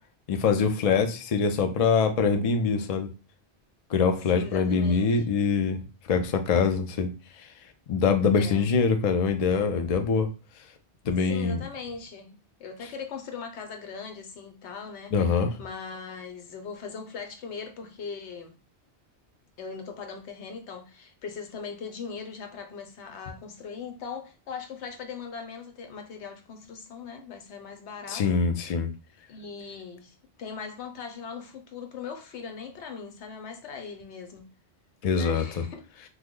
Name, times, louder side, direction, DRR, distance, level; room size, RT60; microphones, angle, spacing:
voice 1, 0.3-3.1 3.9-5.8 6.1-7.1 7.9-10.3 11.1-11.6 15.1-15.5 28.1-28.9 35.0-35.6, left 5 dB, 60° left, 0.4 m, -24 dB
voice 2, 4.3-5.1 8.3-8.7 11.2-18.5 19.6-28.4 29.3-34.5 35.1-35.8, left 5 dB, 80° left, 1.0 m, -40 dB
3.0 x 2.1 x 3.6 m
omnidirectional pair, 1.2 m